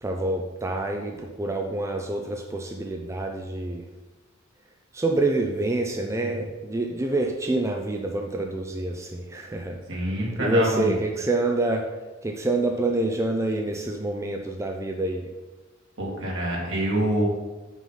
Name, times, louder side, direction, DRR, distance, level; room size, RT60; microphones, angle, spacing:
voice 1, 0.0-3.9 4.9-11.9 12.2-15.2, right 2 dB, 15° right, 2 dB, 0.4 m, -27 dB
voice 2, 9.9-10.9 16.0-17.3, right 1 dB, 65° right, -3 dB, 2.4 m, -26 dB
6.1 x 5.7 x 5.6 m, 1.2 s
head